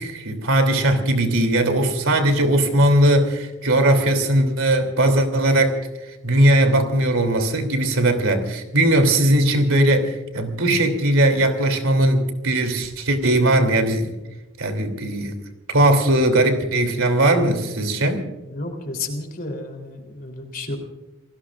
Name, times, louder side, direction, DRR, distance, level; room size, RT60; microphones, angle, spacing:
voice 1, 0.0-5.8 6.2-14.2 14.6-15.4 15.7-18.2, right 1 dB, 80° right, 5 dB, 3.0 m, -19 dB
voice 2, 18.5-20.8, left 2 dB, 45° left, 4 dB, 3.5 m, -31 dB
29.0 x 19.5 x 2.5 m, 1.0 s
head